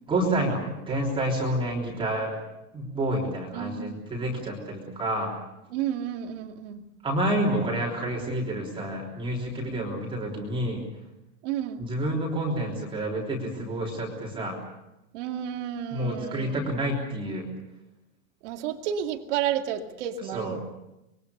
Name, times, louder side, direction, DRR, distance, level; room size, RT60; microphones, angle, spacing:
voice 1, 0.1-2.4 2.7-5.3 7.0-10.8 11.8-14.6 15.9-17.5 20.3-20.6, right 1 dB, 10° right, -2 dB, 3.4 m, -29 dB
voice 2, 3.5-4.0 5.7-6.8 11.4-11.8 15.1-16.8 18.4-20.6, right 10 dB, 50° right, 5 dB, 2.5 m, -31 dB
26.0 x 22.0 x 6.8 m, 0.94 s
supercardioid pair, 165°, 44 cm